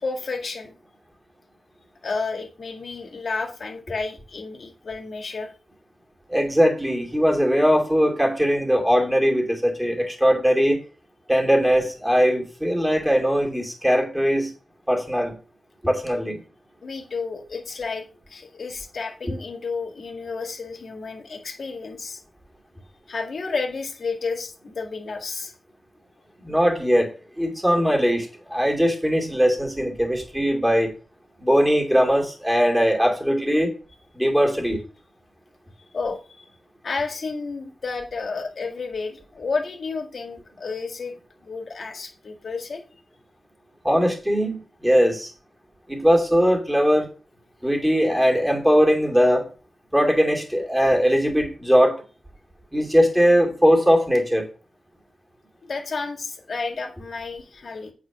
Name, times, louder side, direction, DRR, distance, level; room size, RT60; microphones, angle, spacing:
voice 1, 0.0-0.7 2.0-5.5 16.8-22.2 23.1-25.5 35.9-36.5 36.8-41.1 41.4-42.8 55.6-57.9, left 4 dB, 60° left, 4 dB, 1.9 m, -31 dB
voice 2, 6.3-10.8 11.3-14.5 14.9-15.3 15.8-16.4 19.2-19.3 26.4-30.9 31.4-33.7 34.1-34.8 43.8-45.3 45.9-47.1 47.6-49.5 49.9-52.0 52.7-54.5, equal, 5° right, 1 dB, 2.6 m, -20 dB
8.4 x 4.9 x 6.1 m, 0.37 s
wide cardioid pair, 85°, 0 cm